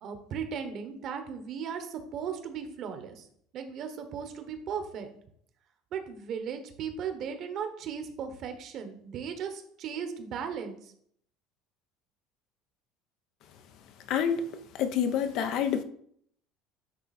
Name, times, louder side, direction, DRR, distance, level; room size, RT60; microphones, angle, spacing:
voice 1, 0.0-3.2 3.5-5.1 5.9-10.9, right 7 dB, 50° right, 1.2 m, -37 dB
voice 2, 14.1-14.4 14.7-15.8, left 8 dB, 60° left, 0.7 m, -27 dB
9.6 x 3.4 x 4.3 m
supercardioid pair, 120°, 0 cm